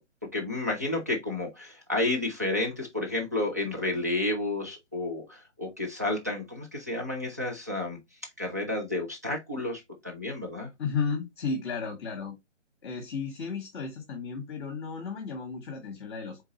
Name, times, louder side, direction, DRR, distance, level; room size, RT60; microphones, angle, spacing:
voice 1, 0.3-8.0 8.4-10.7, left 2 dB, 15° right, 0.4 m, -31 dB
voice 2, 10.8-12.4 12.8-16.4, left 5 dB, 20° left, 1.1 m, -33 dB
4.4 x 3.6 x 3.0 m
figure-of-eight pair, 145°, 37 cm